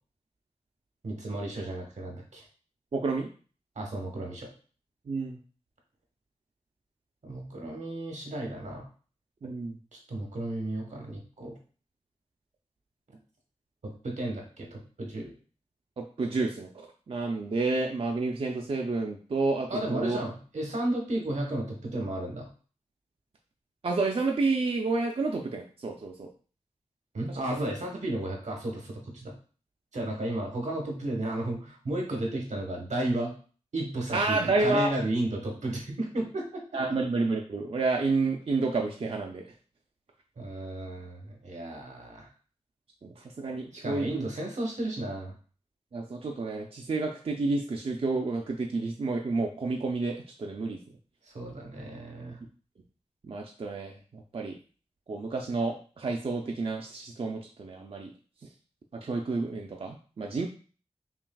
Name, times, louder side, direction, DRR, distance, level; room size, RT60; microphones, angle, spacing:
voice 1, 1.0-2.4 3.8-4.5 7.2-8.9 10.1-11.5 13.8-15.3 19.7-22.5 27.1-29.3 29.9-33.3 33.7-36.6 40.4-42.3 43.8-45.3 51.3-52.4, right 1 dB, 85° right, 0 dB, 1.2 m, -33 dB
voice 2, 2.9-3.3 5.1-5.4 9.4-9.8 16.0-20.2 23.8-26.3 27.3-27.7 34.1-34.9 36.7-39.4 43.0-44.2 45.9-50.8 53.2-54.6 55.1-58.1 58.9-60.5, right 3 dB, 55° right, 1 dB, 0.5 m, -30 dB
5.8 x 2.4 x 2.3 m, 0.38 s
wide cardioid pair, 65°, 12 cm